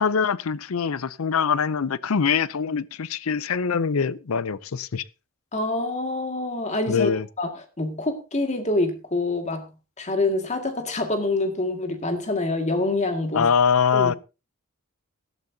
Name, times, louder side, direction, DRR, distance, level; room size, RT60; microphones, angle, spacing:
voice 1, 0.0-5.0 6.9-7.3 13.3-14.2, left 6 dB, 75° left, 0.6 m, -23 dB
voice 2, 5.5-7.1 7.4-7.5 7.8-9.7 10.0-13.5 13.9-14.2, left 2 dB, 35° left, 2.0 m, -26 dB
17.0 x 12.0 x 2.8 m
head